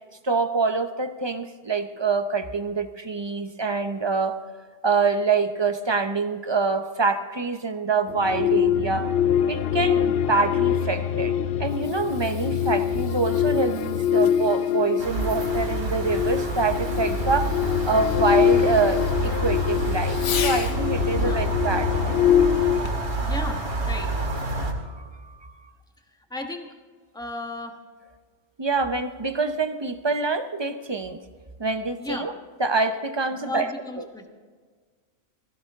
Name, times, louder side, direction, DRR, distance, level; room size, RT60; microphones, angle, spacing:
voice 1, 0.2-4.4 4.8-9.1 9.5-11.3 11.6-17.5 17.9-22.2 24.6-25.7 28.6-31.2 31.6-32.3 32.6-33.7, right 4 dB, 30° right, 8 dB, 0.5 m, -25 dB
sound 1, 8.1-22.8, left 9 dB, 60° left, 0.6 m, -24 dB
Fireworks, 11.6-20.8 22.8-23.2 23.9-24.0, left 7 dB, 85° left, 1.3 m, -39 dB
sound 2, 15.0-24.7, right 2 dB, 65° right, 2.3 m, -28 dB
voice 2, 21.1-21.4 23.2-24.1 26.3-26.8 27.1-27.8 32.0-32.3 33.3-34.3, left 2 dB, 5° left, 3 dB, 1.2 m, -34 dB
16.5 x 15.5 x 3.6 m, 1.5 s
omnidirectional pair, 1.4 m